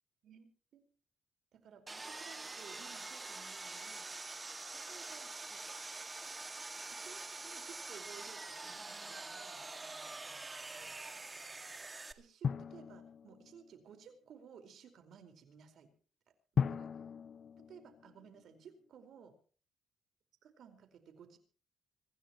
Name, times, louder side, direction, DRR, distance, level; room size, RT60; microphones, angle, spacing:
voice 1, 1.5-4.1 4.7-5.6 7.0-9.6 10.2-10.3 12.2-15.9 16.5-16.9 17.7-19.4 20.4-21.4, right 7 dB, 65° right, 7 dB, 4.7 m, -57 dB
Sawing, 1.9-12.1, right 3 dB, 20° right, 1.9 m, -45 dB
Drum, 12.4-13.9 16.6-18.7, left 7 dB, 50° left, 0.7 m, -38 dB
25.5 x 15.5 x 3.0 m, 0.41 s
cardioid pair, 90°, 0 cm